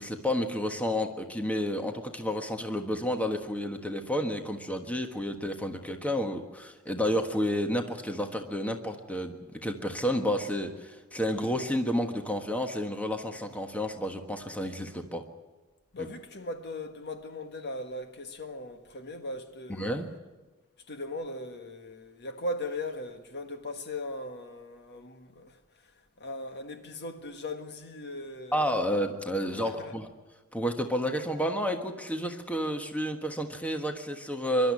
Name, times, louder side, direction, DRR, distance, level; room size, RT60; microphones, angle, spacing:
voice 1, 0.0-15.2 16.0-16.1 19.7-20.1 28.5-30.1 30.5-34.7, equal, 5° left, 1.4 m, -30 dB
voice 2, 15.9-19.9 20.9-25.9 26.2-28.7 29.6-29.9, left 2 dB, 50° left, 1.6 m, -38 dB
24.5 x 12.5 x 9.7 m
head